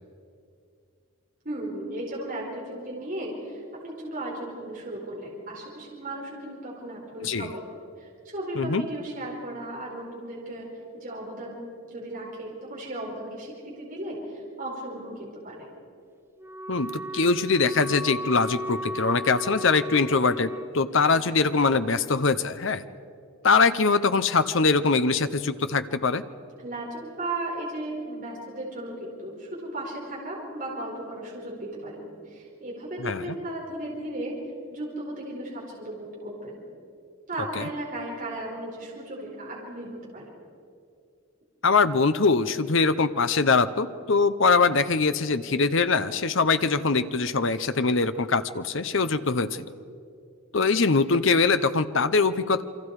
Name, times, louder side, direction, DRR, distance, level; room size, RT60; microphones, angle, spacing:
voice 1, 1.4-7.7 8.0-10.7 10.9-15.7 26.6-34.3 34.7-36.6 37.3-40.4, right 1 dB, 40° right, -4 dB, 4.8 m, -36 dB
Wind instrument woodwind instrument, 16.4-20.7, equal, 10° right, 0.7 m, -35 dB
voice 2, 16.7-22.8 23.4-26.2 33.0-33.4 37.6-37.7 41.6-49.6 50.5-52.6, left 4 dB, 60° left, 12 dB, 0.8 m, -23 dB
28.0 x 24.0 x 4.9 m, 2.4 s
head